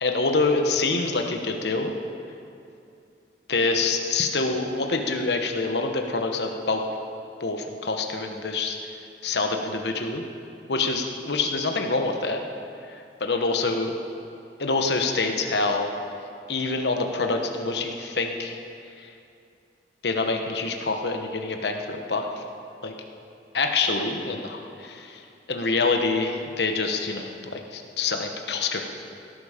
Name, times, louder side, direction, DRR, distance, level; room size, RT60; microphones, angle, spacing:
voice 1, 0.0-2.0 3.5-6.8 7.4-8.8 9.2-10.2 10.7-12.4 12.9-13.9 14.6-15.9 16.5-18.6 19.0-19.1 20.0-22.4 22.8-22.9 23.5-28.8, left 3 dB, 70° left, 4 dB, 1.1 m, -26 dB
18.5 x 11.5 x 5.0 m, 2.6 s
head